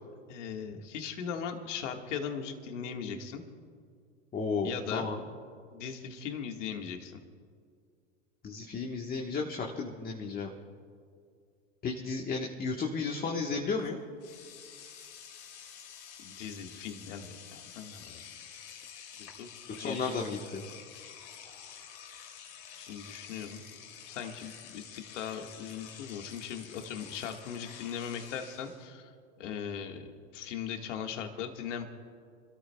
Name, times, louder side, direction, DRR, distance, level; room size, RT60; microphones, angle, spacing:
voice 1, 0.3-3.4 4.6-5.1 5.7-7.2 16.2-18.2 19.2-19.5 19.7-20.1 22.8-23.6 24.1-29.1 29.4-31.8, left 7 dB, 80° left, 4 dB, 1.7 m, -39 dB
voice 2, 4.3-5.2 8.4-10.5 11.8-14.0 19.8-20.6, left 4 dB, 25° left, 0 dB, 1.3 m, -33 dB
Engine / Domestic sounds home sounds, 13.8-13.9 14.2-28.9, left 8 dB, 65° left, 2.9 m, -49 dB
29.0 x 13.0 x 2.3 m, 2.2 s
hypercardioid pair, 110°, 36 cm